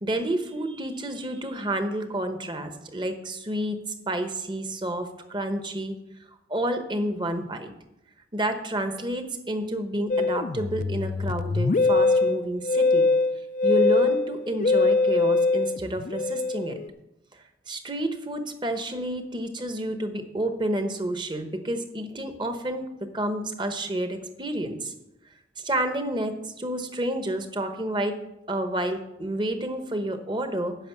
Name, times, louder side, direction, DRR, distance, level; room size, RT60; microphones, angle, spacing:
voice 1, 0.0-3.8 4.1-5.9 6.5-7.7 8.3-13.1 13.6-16.8 17.7-24.9 25.6-28.2 28.5-30.8, right 1 dB, 25° right, 7 dB, 1.1 m, -29 dB
Musical instrument, 10.1-16.9, left 3 dB, 45° left, 0.4 m, -23 dB
10.0 x 6.4 x 8.4 m, 0.90 s
head